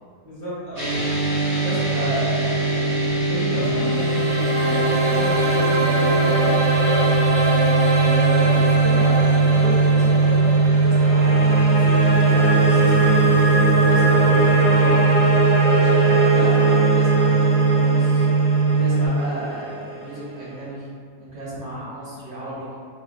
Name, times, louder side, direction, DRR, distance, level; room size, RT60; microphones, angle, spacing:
voice 1, 0.2-1.0 3.2-7.1 14.6-14.9 15.6-15.7, equal, 50° left, -10 dB, 1.0 m, -33 dB
sound 1, 0.8-19.1, right 4 dB, 65° right, 1.2 m, -19 dB
voice 2, 1.6-2.7 3.5-3.9 7.9-15.1 15.7-18.3 18.6-20.9 21.2-22.7, right 1 dB, 45° right, -10 dB, 1.2 m, -32 dB
sound 2, 3.4-20.5, right 2 dB, 90° right, 0.9 m, -23 dB
2.5 x 2.2 x 2.3 m, 2.1 s
omnidirectional pair, 1.3 m